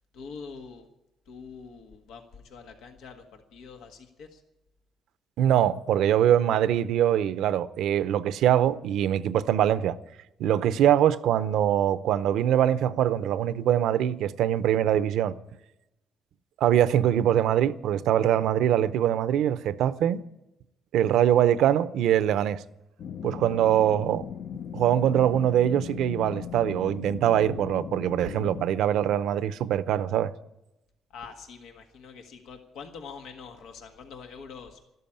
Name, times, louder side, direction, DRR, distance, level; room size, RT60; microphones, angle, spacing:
voice 1, 0.1-0.9 1.3-4.4 31.1-34.8, left 5 dB, 90° left, 1.6 m, -44 dB
voice 2, 5.4-9.9 10.4-15.4 16.6-20.2 20.9-22.6 23.2-24.3 24.7-30.3, right 10 dB, 85° right, 0.7 m, -23 dB
sound 1, 23.0-28.7, left 8 dB, 65° left, 0.7 m, -38 dB
12.5 x 12.5 x 8.8 m
cardioid pair, 90°, 0 cm